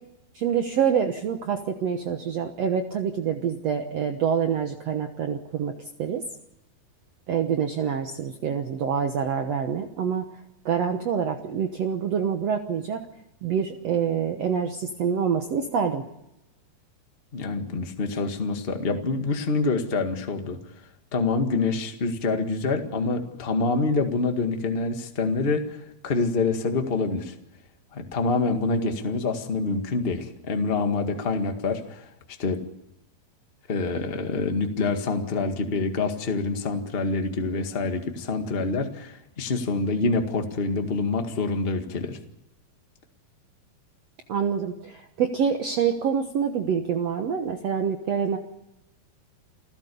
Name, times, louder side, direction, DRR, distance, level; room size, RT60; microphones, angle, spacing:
voice 1, 0.3-6.2 7.3-10.3 10.7-13.1 13.4-16.1 44.3-48.4, right 7 dB, 60° right, 5 dB, 1.8 m, -26 dB
voice 2, 17.3-20.6 21.1-27.4 27.9-32.0 32.4-32.6 33.7-42.2, left 3 dB, 30° left, 5 dB, 1.0 m, -26 dB
29.0 x 15.5 x 7.0 m, 0.90 s
omnidirectional pair, 4.3 m